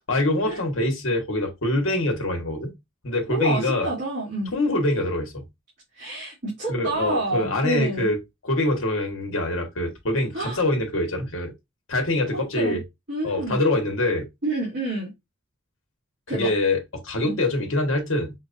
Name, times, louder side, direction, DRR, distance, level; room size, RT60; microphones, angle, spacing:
voice 1, 0.1-2.7 3.0-3.9 4.5-5.4 6.7-8.2 8.4-11.5 11.9-12.8 13.2-14.3 16.3-18.3, left 1 dB, 75° left, 1.2 m, -24 dB
voice 2, 3.3-4.5 6.0-8.1 10.3-10.6 12.3-12.8 13.1-13.6 14.4-15.1 16.3-16.5 17.2-17.4, right 2 dB, 55° right, 2.6 m, -28 dB
5.9 x 2.3 x 2.5 m
head